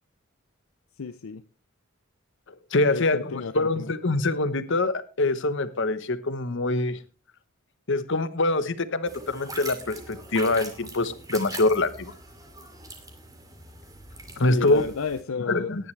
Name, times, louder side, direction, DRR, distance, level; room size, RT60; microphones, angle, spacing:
voice 1, 1.0-1.4 2.9-3.9 14.5-15.9, left 5 dB, 80° left, 0.6 m, -33 dB
voice 2, 2.7-7.0 7.9-12.1 14.4-14.8 15.5-15.8, left 2 dB, 60° left, 1.1 m, -24 dB
sound 1, 9.1-15.2, right 2 dB, 15° right, 2.5 m, -42 dB
18.0 x 10.5 x 3.3 m
head